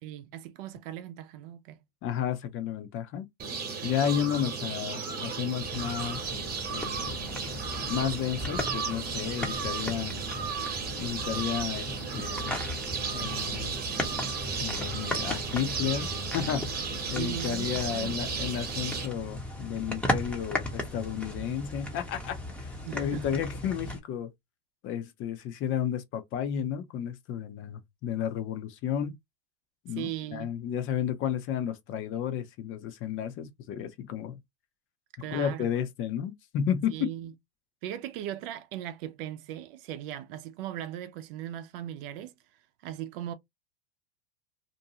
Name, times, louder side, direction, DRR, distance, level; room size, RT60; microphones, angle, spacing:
voice 1, 0.0-1.8 17.1-18.2 22.8-23.3 30.0-30.5 35.2-35.7 36.9-37.3 37.8-42.3 42.8-43.3, right 12 dB, 65° right, 0.6 m, -38 dB
voice 2, 2.0-3.3 3.8-6.4 6.7-7.2 7.9-10.2 11.0-12.6 13.1-13.7 14.5-16.7 17.1-24.3 24.8-29.2 29.8-34.4 35.3-37.1, left 9 dB, 40° left, 0.7 m, -32 dB
sound 1, 3.4-19.1, right 5 dB, 30° right, 1.1 m, -34 dB
sound 2, 5.6-24.0, left 1 dB, 5° left, 0.7 m, -37 dB
2.6 x 2.2 x 2.8 m
hypercardioid pair, 110°, 31 cm